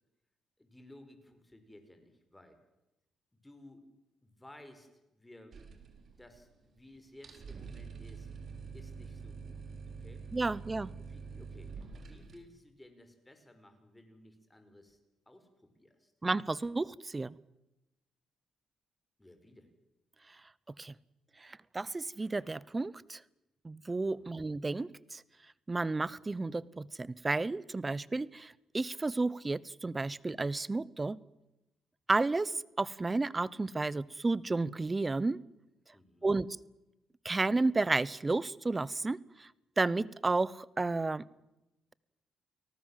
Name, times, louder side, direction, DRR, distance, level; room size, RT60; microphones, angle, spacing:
voice 1, 0.6-2.6 3.4-3.8 4.2-5.6 5.9-8.3 8.7-10.3 11.1-15.0 15.3-16.1 19.2-19.7 24.1-24.3 35.9-36.3, left 1 dB, 10° left, 7 dB, 5.6 m, -57 dB
sound 1, 5.5-6.5 6.8-6.9 7.1-12.4, right 5 dB, 50° right, 4.2 m, -46 dB
voice 2, 10.3-10.9 16.2-17.4 20.8-20.9 21.4-23.2 23.6-25.2 25.7-31.2 32.1-35.4 36.2-36.5 37.2-39.5 39.8-41.2, right 3 dB, 20° right, 22 dB, 0.9 m, -32 dB
30.0 x 19.0 x 7.5 m, 0.94 s
cardioid pair, 90°, 0 cm